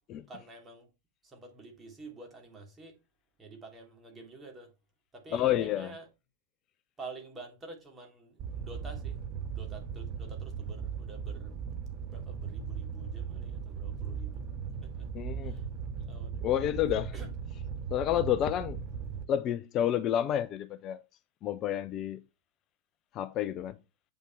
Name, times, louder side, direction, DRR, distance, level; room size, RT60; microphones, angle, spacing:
voice 1, 0.3-0.9 1.2-3.0 3.4-4.7 5.1-6.1 7.0-9.2 9.5-11.6 12.1-14.5 14.8-15.1 15.4-15.6 16.1-16.4 17.1-17.3, right 3 dB, 15° right, 2.9 m, -48 dB
voice 2, 5.3-5.9 15.1-15.6 16.4-17.1 17.9-18.8 19.3-21.0 21.4-22.2 23.1-23.8, left 11 dB, 35° left, 0.5 m, -29 dB
Fire, 8.4-19.2, right 7 dB, 30° right, 1.5 m, -38 dB
8.4 x 5.4 x 4.6 m
figure-of-eight pair, 90°, 0 cm